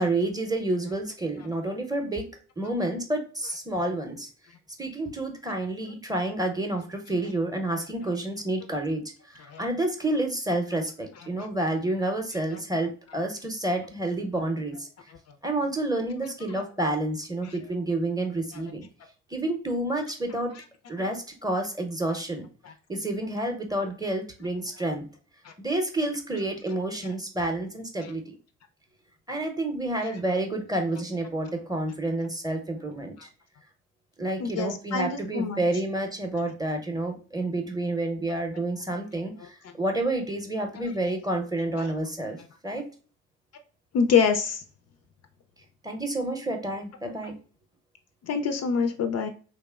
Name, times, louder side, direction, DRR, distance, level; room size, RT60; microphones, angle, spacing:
voice 1, 0.0-2.3 2.6-4.3 4.8-14.9 15.4-18.9 19.3-20.5 20.9-22.5 22.9-25.1 25.6-28.3 29.3-33.3 34.2-42.4 42.6-42.9 45.8-47.3, right 1 dB, 10° right, 4 dB, 0.6 m, -29 dB
voice 2, 34.4-35.6 40.8-40.9 41.8-41.9 43.9-44.6 47.0-47.3 48.2-49.3, left 6 dB, 50° left, 7 dB, 0.4 m, -26 dB
2.9 x 2.1 x 2.3 m, 0.38 s
supercardioid pair, 55°, 34 cm